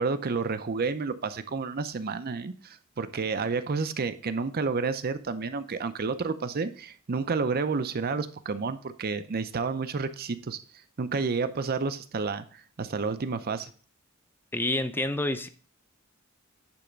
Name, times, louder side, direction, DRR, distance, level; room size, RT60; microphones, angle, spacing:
voice 1, 0.0-10.6 11.0-13.7, right 4 dB, 45° right, 11 dB, 0.6 m, -30 dB
voice 2, 14.5-15.5, left 2 dB, 10° left, 10 dB, 0.5 m, -28 dB
9.9 x 3.5 x 5.1 m, 0.41 s
head